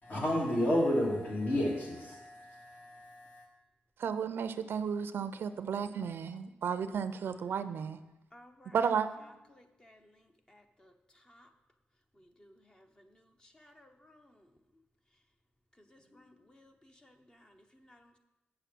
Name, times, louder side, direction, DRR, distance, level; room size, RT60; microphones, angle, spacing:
voice 1, 0.0-3.4, left 1 dB, 50° left, -2 dB, 2.9 m, -31 dB
voice 2, 4.0-8.0 8.7-9.1, right 7 dB, 75° right, 11 dB, 0.5 m, -33 dB
voice 3, 8.3-8.8 9.2-11.5 12.1-14.8 15.8-18.2, left 1 dB, 20° left, 5 dB, 0.9 m, -61 dB
7.9 x 6.8 x 6.0 m, 0.99 s
cardioid pair, 85°, 4 cm